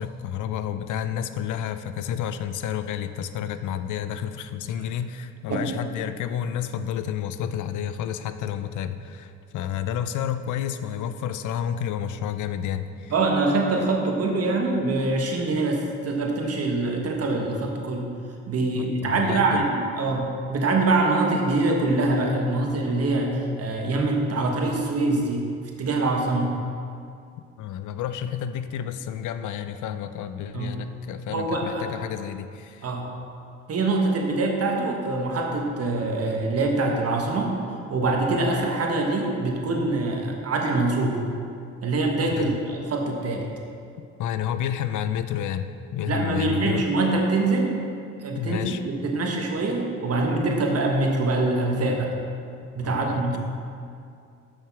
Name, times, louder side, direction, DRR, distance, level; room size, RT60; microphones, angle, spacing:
voice 1, 0.0-13.1 18.7-19.7 27.6-32.9 42.4-42.5 44.2-46.8 48.3-48.8 52.8-53.4, left 9 dB, 80° left, 11 dB, 0.6 m, -30 dB
voice 2, 13.1-18.1 18.5-25.5 25.8-26.5 30.5-30.8 31.3-31.8 32.8-33.1 33.7-37.6 37.9-41.2 41.8-43.5 46.1-47.8 48.2-52.1 52.7-53.4, right 2 dB, 55° right, 1 dB, 1.4 m, -24 dB
6.5 x 6.4 x 5.9 m, 2.5 s
cardioid pair, 90°, 30 cm